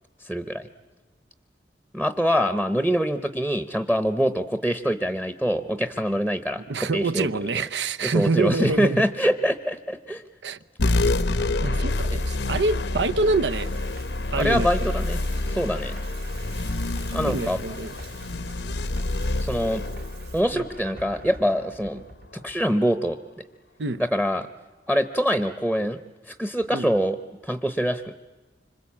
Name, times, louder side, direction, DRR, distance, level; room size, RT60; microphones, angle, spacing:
voice 1, 0.2-0.7 1.9-7.3 7.5-7.6 8.0-10.2 12.1-12.2 14.4-15.2 15.5-16.0 17.1-17.6 19.4-19.8 20.3-22.0 22.4-23.2 24.0-24.5 24.9-26.0 26.3-27.2 27.4-28.2, equal, 5° right, 0.8 m, -24 dB
voice 2, 6.7-9.0 10.4-10.6 11.6-13.9 14.3-14.7 17.3-17.9 20.5-20.6 23.8-24.0 26.7-26.9, right 3 dB, 85° right, 0.8 m, -26 dB
sound 1, 10.8-21.7, left 2 dB, 85° left, 1.0 m, -27 dB
sound 2, 12.5-22.7, right 1 dB, 55° right, 1.6 m, -48 dB
Bathtub (filling or washing), 13.5-20.4, right 9 dB, 70° right, 4.4 m, -50 dB
26.5 x 25.5 x 8.6 m
head